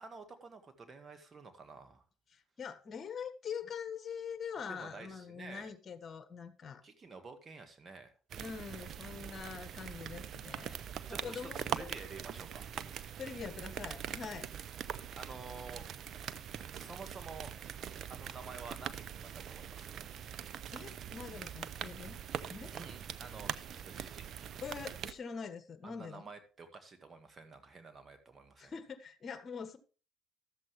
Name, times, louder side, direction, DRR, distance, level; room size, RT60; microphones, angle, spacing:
voice 1, 0.0-2.0 4.7-5.7 6.8-8.1 11.1-12.7 15.2-15.8 16.7-17.5 18.1-20.0 22.7-24.3 25.8-28.7, right 4 dB, 35° right, 8 dB, 1.7 m, -50 dB
voice 2, 2.3-6.8 8.4-10.8 11.1-11.9 13.2-14.5 20.7-22.2 22.5-22.7 24.6-26.3 28.6-29.8, left 6 dB, 45° left, 9 dB, 1.3 m, -44 dB
sound 1, 8.3-25.1, right 9 dB, 55° right, 0.6 m, -43 dB
13.0 x 7.6 x 3.3 m, 0.37 s
hypercardioid pair, 65°, 0 cm